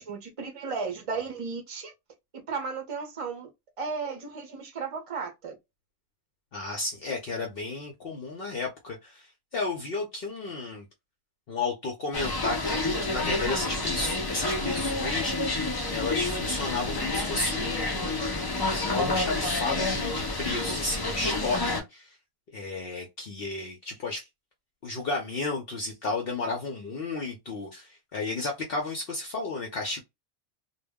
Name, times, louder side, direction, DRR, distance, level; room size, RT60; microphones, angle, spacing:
voice 1, 0.0-1.9 2.3-3.5 3.8-5.6, right 5 dB, 35° right, 0.6 m, -34 dB
voice 2, 6.5-10.9 11.5-18.3 18.8-22.2 22.5-24.3 24.8-30.0, left 3 dB, 60° left, 0.8 m, -33 dB
sound 1, 12.1-21.8, left 2 dB, 40° left, 0.3 m, -29 dB
2.2 x 2.0 x 3.4 m
omnidirectional pair, 1.2 m